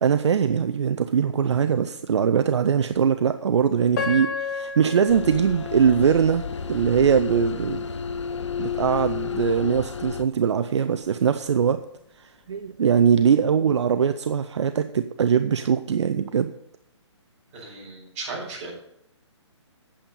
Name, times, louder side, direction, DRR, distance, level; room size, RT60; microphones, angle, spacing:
voice 1, 0.0-6.4 6.7-7.9 8.6-11.8 12.2-16.5, right 7 dB, 65° right, 9 dB, 0.6 m, -21 dB
Piano, 3.9-7.0 7.5-7.6 8.3-8.5, left 5 dB, 40° left, 1.7 m, -33 dB
sound 1, 5.1-10.2, left 7 dB, 75° left, 0.9 m, -31 dB
voice 2, 17.5-18.7, right 3 dB, 30° right, -3 dB, 5.0 m, -36 dB
8.7 x 8.6 x 5.4 m, 0.77 s
hypercardioid pair, 155°, 16 cm